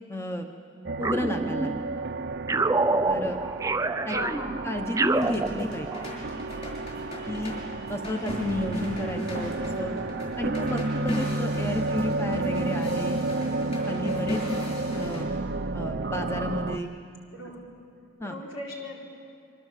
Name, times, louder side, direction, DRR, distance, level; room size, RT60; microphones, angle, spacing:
voice 1, 0.1-0.5 1.0-1.7 3.1-3.4 4.0-4.4 4.6-5.9 7.3-7.5 7.9-9.9 10.4-13.2 13.9-14.4 15.0-15.3 15.7-16.9 18.2-18.4, left 1 dB, 15° left, 4 dB, 1.0 m, -32 dB
sound 1, 0.8-16.8, right 2 dB, 55° right, 0.7 m, -31 dB
sound 2, 1.0-2.0 2.5-6.1, right 3 dB, 15° right, 0.5 m, -27 dB
voice 2, 4.1-4.9 17.3-17.7 18.2-19.0, left 1 dB, 75° left, -2 dB, 4.4 m, -37 dB
sound 3, 5.1-15.2, left 1 dB, 35° left, 6.4 m, -38 dB
26.5 x 24.0 x 7.5 m, 2.4 s
head